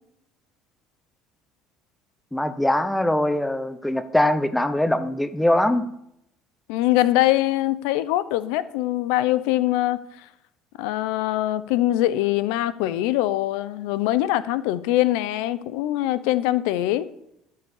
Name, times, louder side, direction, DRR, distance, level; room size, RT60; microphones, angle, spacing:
voice 1, 2.3-5.9, left 1 dB, 5° left, 12 dB, 0.9 m, -22 dB
voice 2, 6.7-10.3 10.8-17.1, left 15 dB, 85° left, 15 dB, 0.7 m, -23 dB
13.5 x 5.6 x 7.2 m, 0.79 s
supercardioid pair, 100°, 0 cm